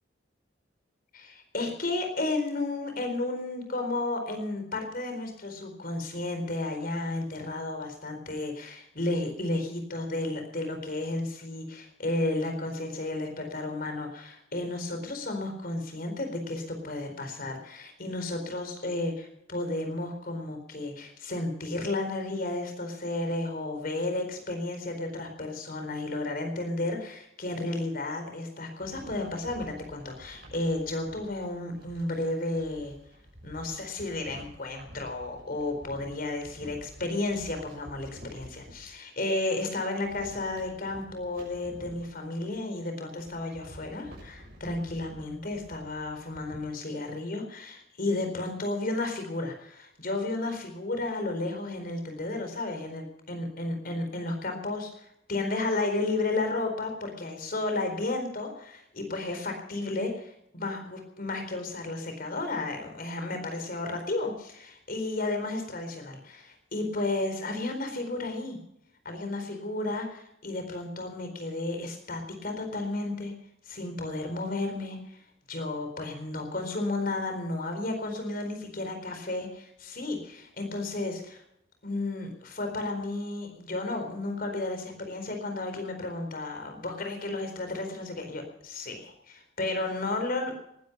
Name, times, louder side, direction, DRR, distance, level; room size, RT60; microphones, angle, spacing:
voice 1, 1.1-32.9 33.4-68.6 69.0-73.3 73.7-75.2 75.5-79.5 79.8-81.4 81.8-90.6, left 2 dB, 50° left, 5 dB, 4.4 m, -33 dB
sound 1, 28.8-38.9 39.3-46.6, equal, 55° right, 6.7 m, -50 dB
19.5 x 12.5 x 5.4 m, 0.76 s
head